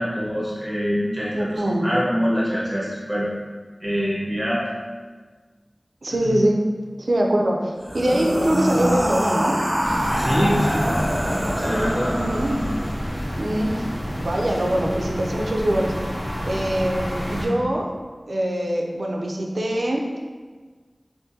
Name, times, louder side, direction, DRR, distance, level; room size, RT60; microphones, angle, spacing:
voice 1, 0.0-3.3 3.8-4.7 6.1-6.4 10.1-10.9 11.5-12.2, equal, 15° right, -7 dB, 1.2 m, -24 dB
voice 2, 1.3-1.9 6.0-6.6 7.0-9.5 12.2-12.8 13.4-13.7 14.2-15.9 16.4-17.9 18.3-20.0, right 1 dB, 80° right, 0 dB, 0.4 m, -23 dB
sound 1, 7.8-13.0, equal, 35° right, 0.6 m, -25 dB
sound 2, 9.8-17.5, equal, 80° left, 1.1 m, -29 dB
3.6 x 2.5 x 2.7 m, 1.4 s
wide cardioid pair, 50°, 0 cm